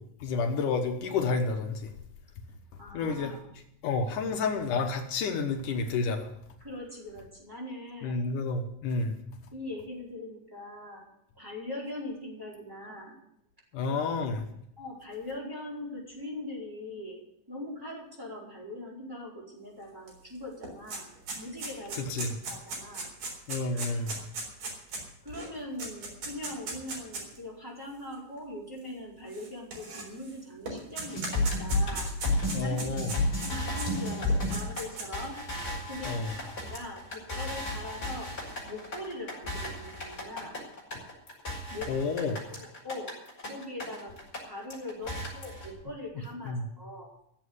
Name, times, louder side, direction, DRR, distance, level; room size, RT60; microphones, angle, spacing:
voice 1, 0.2-1.9 2.9-3.4 3.8-6.3 8.0-9.2 13.7-14.5 22.0-22.4 23.5-24.2 32.5-33.1 36.0-36.3 41.9-42.4 46.4-46.7, left 4 dB, 70° left, 5 dB, 2.6 m, -30 dB
voice 2, 2.8-3.5 6.6-8.2 9.5-11.1 11.3-13.2 14.8-17.2 17.5-21.1 21.3-22.0 22.5-23.1 23.7-24.0 25.2-32.1 32.6-33.0 33.4-35.4 35.9-38.3 38.6-40.6 41.7-43.1 43.5-44.1 44.4-47.1, left 1 dB, 5° right, -3 dB, 4.3 m, -41 dB
sound 1, 20.1-20.2 20.4-27.4 28.1-28.2 29.3-30.3 30.7-33.9 34.3-35.3, right 3 dB, 65° right, 5.4 m, -38 dB
sound 2, 31.1-44.4 44.7-45.7, left 1 dB, 20° left, 5.1 m, -33 dB
15.0 x 7.6 x 9.6 m, 0.72 s
omnidirectional pair, 4.0 m